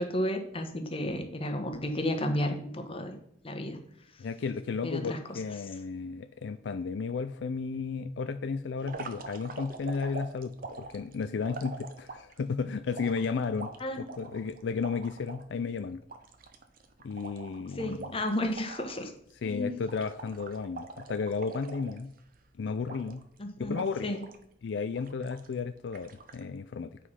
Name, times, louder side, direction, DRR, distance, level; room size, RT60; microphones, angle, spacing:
voice 1, 0.0-3.2 3.4-3.8 4.8-5.2 13.8-14.0 17.8-19.1 19.4-19.7 23.4-23.8 24.0-24.2, left 1 dB, 30° left, 6 dB, 1.2 m, -32 dB
voice 2, 4.2-16.0 17.0-18.2 19.4-22.1 22.6-23.2 23.6-24.1 24.6-27.0, left 5 dB, 70° left, 10 dB, 0.4 m, -33 dB
sound 1, 8.8-12.4 12.9-15.4 15.8-15.9 16.1-19.0 19.3-19.5 19.9-22.4 22.9-23.4 23.7-24.4 24.9-25.5 25.9-26.4, right 3 dB, 50° right, 0.9 m, -44 dB
8.2 x 5.0 x 5.6 m, 0.71 s
head